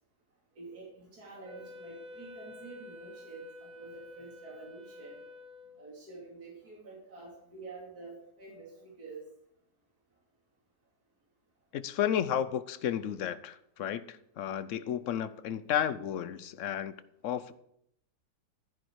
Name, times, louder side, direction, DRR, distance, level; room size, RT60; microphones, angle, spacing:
voice 1, 0.6-5.2 5.8-9.2, right 3 dB, 60° right, -4 dB, 3.4 m, -48 dB
Wind instrument woodwind instrument, 1.4-6.0, left 3 dB, 5° right, 1.2 m, -50 dB
voice 2, 11.7-16.9 17.2-17.5, left 9 dB, 60° left, 14 dB, 0.8 m, -32 dB
12.0 x 10.5 x 4.7 m, 0.72 s
omnidirectional pair, 1.9 m